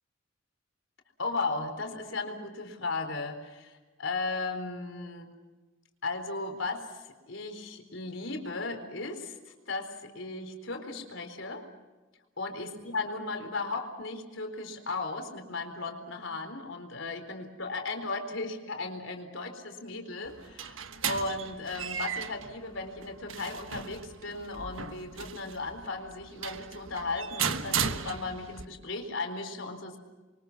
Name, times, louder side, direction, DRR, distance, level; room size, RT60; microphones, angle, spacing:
voice 1, 1.2-5.3 6.0-7.0 7.3-9.4 9.7-11.7 12.4-30.0, left 3 dB, 75° left, 5 dB, 4.1 m, -36 dB
sound 1, 20.2-28.7, right 7 dB, 85° right, 1.4 m, -36 dB
28.5 x 24.0 x 6.0 m, 1.2 s
head